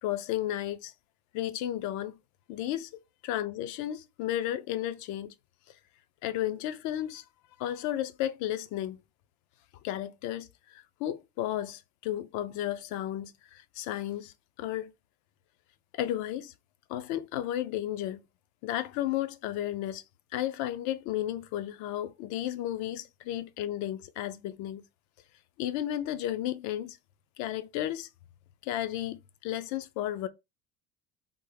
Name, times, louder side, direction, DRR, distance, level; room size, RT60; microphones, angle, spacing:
voice 1, 0.0-0.9 1.3-2.2 2.5-2.9 3.2-5.3 6.2-7.2 7.6-9.0 9.8-14.9 15.9-16.5 16.9-18.2 18.6-20.0 20.3-24.8 25.6-27.0 27.4-28.1 28.6-30.3, left 12 dB, 70° left, 0.5 m, -33 dB
3.5 x 2.0 x 3.2 m
supercardioid pair, 115°, 31 cm